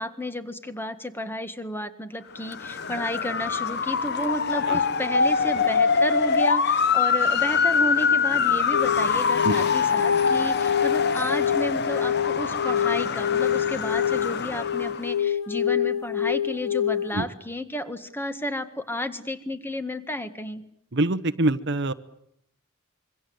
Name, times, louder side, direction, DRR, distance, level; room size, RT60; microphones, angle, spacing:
voice 1, 0.0-20.6, left 1 dB, 10° left, 10 dB, 1.7 m, -32 dB
Motor vehicle (road) / Siren, 2.4-15.1, left 5 dB, 50° left, 1.0 m, -24 dB
sound 1, 8.7-17.1, left 9 dB, 85° left, 2.0 m, -26 dB
voice 2, 20.9-21.9, right 2 dB, 55° right, 13 dB, 1.0 m, -24 dB
26.5 x 24.0 x 8.0 m, 0.73 s
head